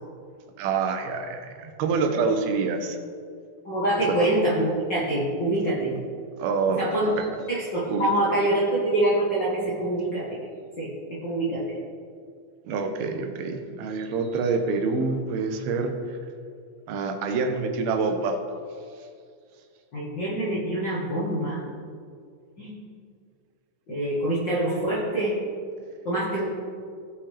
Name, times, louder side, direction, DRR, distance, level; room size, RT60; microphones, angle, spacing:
voice 1, 0.6-3.0 6.4-6.9 7.2-7.3 7.9-8.1 12.7-15.9 16.9-18.4, right 4 dB, 85° right, 5 dB, 2.7 m, -26 dB
voice 2, 3.6-5.9 6.8-7.1 7.5-10.3 10.8-11.7 19.9-21.6 22.6-22.7 23.9-25.3 26.0-26.5, right 1 dB, 50° left, -8 dB, 1.4 m, -25 dB
16.0 x 5.6 x 3.4 m, 2.2 s
omnidirectional pair, 4.2 m